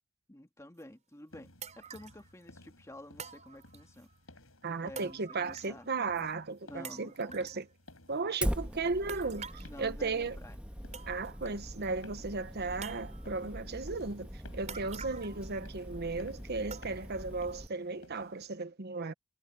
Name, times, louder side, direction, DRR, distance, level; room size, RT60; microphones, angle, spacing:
voice 1, 0.3-1.5 1.8-4.1 4.8-5.9 6.6-7.6 8.4-8.8 9.6-10.6, left 1 dB, 15° left, 2.1 m, -50 dB
sound 1, 0.8-0.9 1.6-2.2 3.2-4.0 5.0-5.9 6.2-6.3 6.8-7.6 9.1-9.7 10.5-10.6 10.9-11.5 11.8-11.9 12.8-13.4 14.7-15.5 15.7-15.8 16.7-17.2 17.7-17.8 18.4-18.5, right 6 dB, 35° right, 5.1 m, -47 dB
sound 2, 1.3-18.6, left 2 dB, 85° left, 7.1 m, -58 dB
voice 2, 4.6-7.7 8.1-10.4 11.1-19.1, right 3 dB, 50° right, 1.0 m, -35 dB
Fire, 8.4-17.7, equal, 5° right, 1.9 m, -41 dB
head